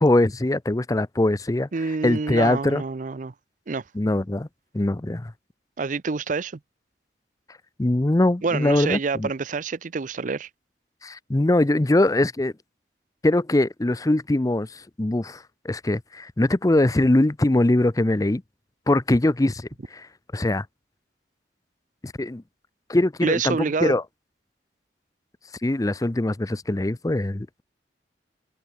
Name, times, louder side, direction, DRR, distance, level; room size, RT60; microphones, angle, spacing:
voice 1, 0.0-1.7 2.0-2.8 3.9-4.5 4.7-5.3 7.8-9.3 11.0-12.5 13.2-18.4 18.9-20.1 20.3-20.7 22.0-22.4 22.9-24.0 25.6-27.6, left 1 dB, 20° left, 0.6 m, -22 dB
voice 2, 1.7-3.3 3.7-3.8 5.8-6.6 8.4-10.5 23.2-24.0, right 4 dB, 45° right, 0.5 m, -27 dB
head